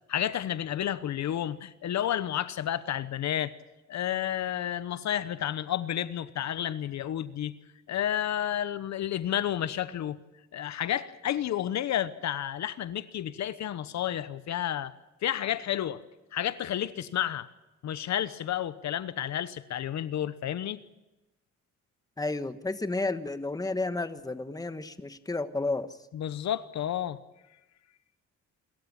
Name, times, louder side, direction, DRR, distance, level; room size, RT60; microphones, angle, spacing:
voice 1, 0.1-3.5 3.9-7.5 7.9-10.2 10.5-14.9 15.2-16.0 16.3-17.5 17.8-20.8 26.1-27.2, left 11 dB, 65° left, 1.0 m, -31 dB
voice 2, 22.2-26.0, left 2 dB, 10° left, 1.3 m, -32 dB
27.5 x 14.5 x 8.7 m
cardioid pair, 90°, 30 cm